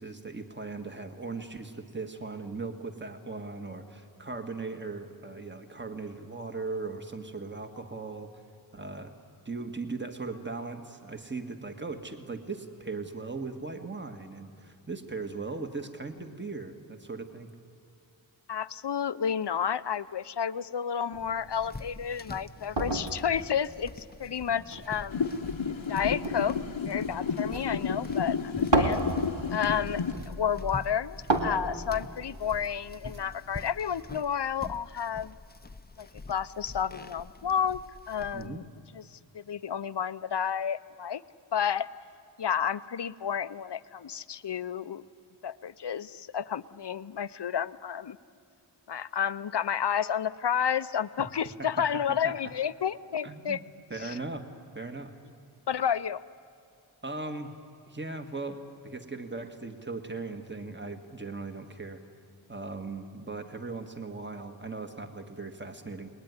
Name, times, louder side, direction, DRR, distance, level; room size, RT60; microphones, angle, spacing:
voice 1, 0.0-8.3 8.7-9.1 9.5-17.5 28.6-28.9 38.3-38.6 51.6-52.3 53.2-53.6 53.9-54.4 54.8-55.1 57.0-57.6 57.9-62.0 62.5-66.1, right 3 dB, 25° right, 6 dB, 1.8 m, -38 dB
voice 2, 18.5-25.3 25.9-26.6 26.9-29.0 29.5-35.3 36.0-37.8 38.1-38.6 38.9-41.2 41.5-41.9 42.4-45.0 45.4-48.2 48.9-53.6 54.0-54.2 55.7-56.2, left 8 dB, 60° left, 15 dB, 0.7 m, -31 dB
sound 1, 21.1-34.0, right 2 dB, 65° right, 2.4 m, -35 dB
sound 2, 21.5-38.5, left 3 dB, 20° left, 0.7 m, -45 dB
sound 3, 25.1-30.1, left 6 dB, 80° left, 1.1 m, -31 dB
29.5 x 20.5 x 9.7 m, 2.4 s
wide cardioid pair, 70°, 46 cm